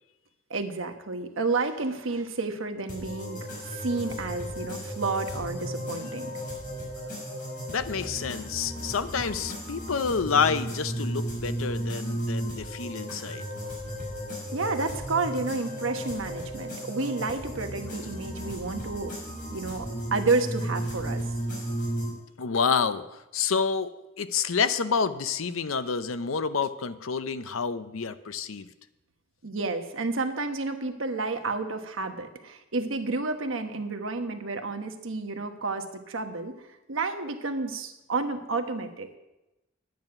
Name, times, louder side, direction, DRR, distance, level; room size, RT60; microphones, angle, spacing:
voice 1, 0.5-6.3 14.5-19.1 19.5-21.3 29.4-36.6 36.9-39.1, right 3 dB, 80° right, 6 dB, 1.2 m, -30 dB
sound 1, 2.9-22.1, equal, 45° left, 5.3 m, -35 dB
voice 2, 7.7-13.5 22.4-28.7, left 5 dB, 90° left, 12 dB, 0.7 m, -28 dB
10.5 x 9.3 x 5.9 m, 0.97 s
head